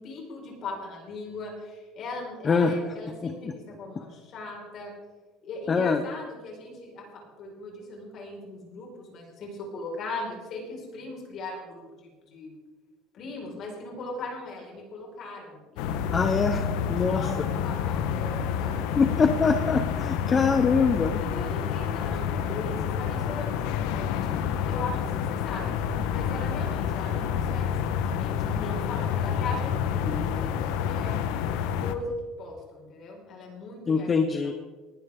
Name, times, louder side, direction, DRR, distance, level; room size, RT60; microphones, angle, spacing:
voice 1, 0.0-4.9 5.4-12.5 13.1-16.5 17.1-19.0 21.2-24.3 24.6-25.7 26.1-31.1 31.8-34.1, left 2 dB, 40° left, -1 dB, 5.1 m, -39 dB
voice 2, 2.4-2.8 3.2-3.5 5.7-6.0 16.1-16.6 16.9-17.2 19.0-21.2 33.9-34.5, left 5 dB, 20° left, 8 dB, 0.7 m, -23 dB
sound 1, 15.8-31.9, left 8 dB, 75° left, 1.1 m, -28 dB
19.5 x 11.5 x 3.7 m, 1.3 s
cardioid pair, 155°, 0 cm